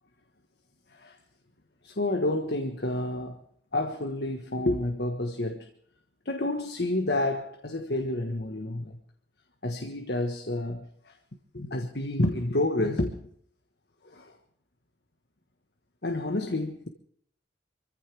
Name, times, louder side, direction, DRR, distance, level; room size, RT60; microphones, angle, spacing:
voice 1, 1.8-3.4 3.7-5.7 6.2-9.0 9.6-11.2 11.5-13.3 14.0-14.4 16.0-16.9, left 1 dB, 65° left, 1.4 m, -29 dB
25.5 x 15.0 x 3.5 m
head